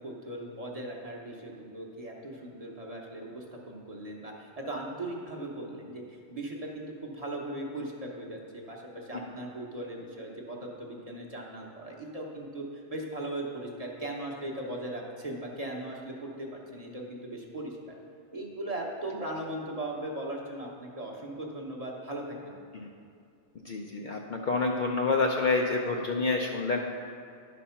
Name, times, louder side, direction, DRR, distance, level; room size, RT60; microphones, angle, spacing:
voice 1, 0.0-6.0 6.3-17.9 18.3-22.6, right 1 dB, 35° right, -1 dB, 0.9 m, -38 dB
voice 2, 23.7-26.8, left 3 dB, 55° left, 1 dB, 0.6 m, -28 dB
10.5 x 4.2 x 5.6 m, 2.4 s
omnidirectional pair, 1.2 m